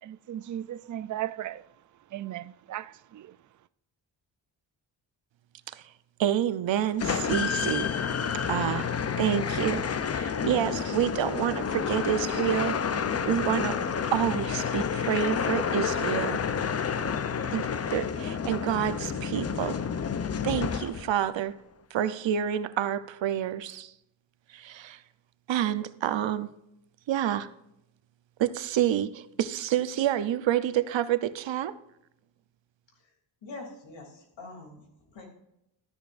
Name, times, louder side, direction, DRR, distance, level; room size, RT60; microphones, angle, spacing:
voice 1, 0.0-1.7 2.1-3.4, right 12 dB, 45° right, 0.4 m, -36 dB
voice 2, 6.2-7.9 8.5-12.8 13.2-13.8 14.1-16.4 17.5-19.8 20.4-21.6 21.9-23.9 24.5-25.0 25.5-26.5 27.1-27.5 28.4-31.8, right 10 dB, 80° right, 0.7 m, -28 dB
sound 1, 7.0-21.3, left 7 dB, 35° left, 0.6 m, -29 dB
voice 3, 33.4-35.3, left 2 dB, 85° left, 2.9 m, -44 dB
12.5 x 10.5 x 2.5 m
wide cardioid pair, 100°, 44 cm